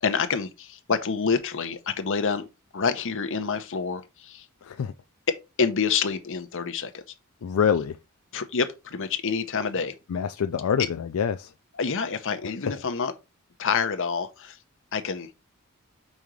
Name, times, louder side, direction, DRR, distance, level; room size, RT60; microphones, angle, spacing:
voice 1, 0.0-2.4 2.7-4.5 5.3-7.0 8.3-10.0 11.8-13.1 13.6-14.6 14.9-15.3, left 5 dB, 65° left, 0.8 m, -27 dB
voice 2, 4.6-4.9 7.4-8.0 10.1-11.5, left 7 dB, 85° left, 0.4 m, -25 dB
5.3 x 3.8 x 4.7 m
head